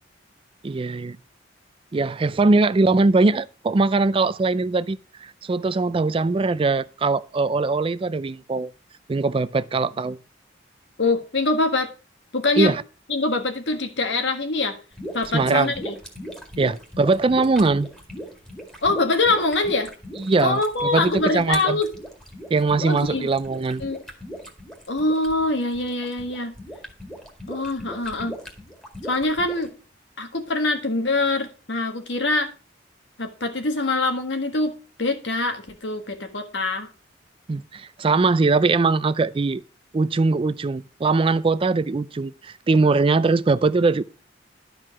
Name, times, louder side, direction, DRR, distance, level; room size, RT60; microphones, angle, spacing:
voice 1, 0.6-1.2 1.9-8.7 9.1-10.2 12.6-12.8 15.3-15.7 16.6-17.9 20.2-20.6 20.9-21.8 22.5-23.8 37.5-39.6 39.9-44.0, right 3 dB, 30° right, 0.4 m, -21 dB
voice 2, 11.0-11.9 12.3-12.7 13.1-14.8 15.1-16.0 18.8-19.9 20.4-21.9 22.8-23.3 23.8-24.0 24.9-26.5 27.5-28.3 29.0-29.7 30.2-32.5 33.2-34.7 35.0-36.9, left 2 dB, 70° left, 1.7 m, -24 dB
sound 1, 14.9-29.7, equal, 5° left, 2.0 m, -38 dB
12.0 x 4.7 x 5.9 m
head